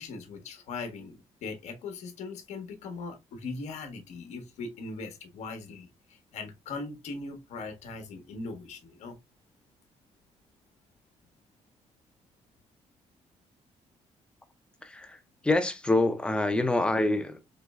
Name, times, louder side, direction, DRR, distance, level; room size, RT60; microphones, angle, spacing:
voice 1, 0.0-9.2, left 3 dB, 70° left, 1.1 m, -40 dB
voice 2, 14.8-17.4, left 2 dB, 10° left, 0.5 m, -26 dB
4.6 x 3.1 x 2.3 m
cardioid pair, 160°, 12 cm